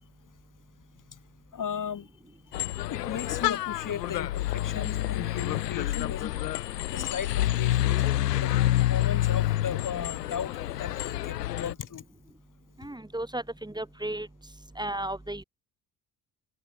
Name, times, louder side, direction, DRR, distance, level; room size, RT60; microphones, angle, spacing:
voice 1, 1.5-2.1 2.8-6.4 6.9-8.0 8.4-12.0, left 8 dB, 40° left, 2.4 m, -36 dB
sound 1, 2.5-11.7, left 14 dB, 90° left, 0.7 m, -28 dB
voice 2, 12.8-14.3 14.8-15.4, right 1 dB, 10° right, 3.0 m, -34 dB
open air
figure-of-eight pair, 50°, 47 cm